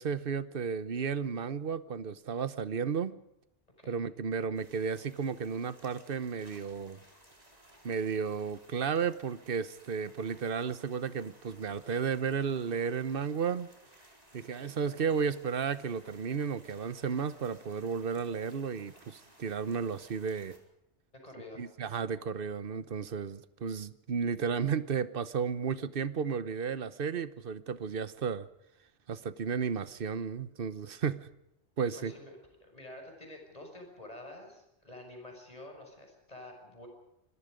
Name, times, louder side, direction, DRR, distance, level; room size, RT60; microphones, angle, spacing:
voice 1, 0.0-3.1 3.9-7.0 7.8-13.7 14.3-20.6 21.6-28.5 29.1-31.3 31.8-32.1, right 6 dB, 55° right, 14 dB, 1.2 m, -33 dB
sound 1, 4.5-20.6, right 1 dB, 35° right, 4.5 m, -60 dB
voice 2, 21.1-21.7 31.9-32.4 32.7-36.9, left 1 dB, 35° left, 2 dB, 6.6 m, -48 dB
26.0 x 22.5 x 5.2 m, 0.84 s
omnidirectional pair, 1.2 m